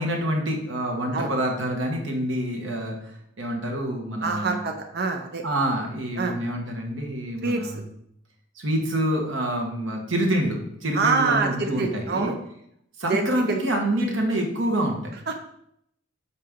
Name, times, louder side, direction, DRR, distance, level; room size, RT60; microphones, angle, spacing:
voice 1, 0.0-3.0 3.4-4.6 5.4-7.9 8.5-12.3 13.0-15.1, right 1 dB, 80° right, 1 dB, 1.3 m, -26 dB
voice 2, 4.2-5.4 6.2-6.3 7.4-7.7 10.9-12.4 13.1-13.6 15.3-15.4, right 4 dB, 55° right, 4 dB, 0.6 m, -25 dB
6.5 x 4.2 x 3.6 m, 0.73 s
head